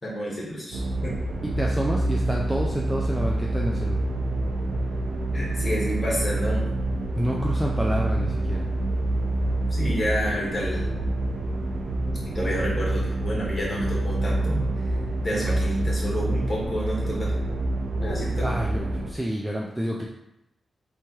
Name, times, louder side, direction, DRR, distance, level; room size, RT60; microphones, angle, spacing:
voice 1, 0.0-1.1 5.3-6.6 9.7-10.9 12.3-14.6 14.8-14.9 15.2-17.3 18.0-18.5, equal, 20° left, -5 dB, 1.4 m, -29 dB
sound 1, 0.7-19.1, right 2 dB, 80° right, 0.6 m, -27 dB
voice 2, 1.6-4.0 7.1-8.7 18.4-20.0, equal, 10° right, -2 dB, 0.3 m, -28 dB
3.4 x 3.1 x 4.4 m, 0.86 s
wide cardioid pair, 175°, 0 cm